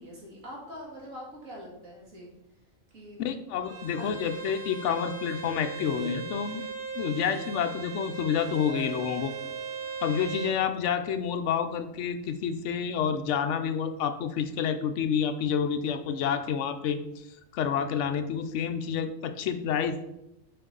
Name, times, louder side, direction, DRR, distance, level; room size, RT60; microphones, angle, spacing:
voice 1, 0.0-2.3 2.9-3.3 3.8-4.2, equal, 75° right, -3 dB, 2.3 m, -44 dB
voice 2, 3.2-6.6 7.0-9.3 10.0-17.0 17.5-20.1, left 7 dB, 70° left, 9 dB, 0.8 m, -29 dB
Bowed string instrument, 3.6-10.6, right 5 dB, 45° right, 1.1 m, -38 dB
sound 1, 8.6-12.6, right 5 dB, 10° left, 1.9 m, -49 dB
6.7 x 4.6 x 3.8 m, 0.86 s
omnidirectional pair, 1.4 m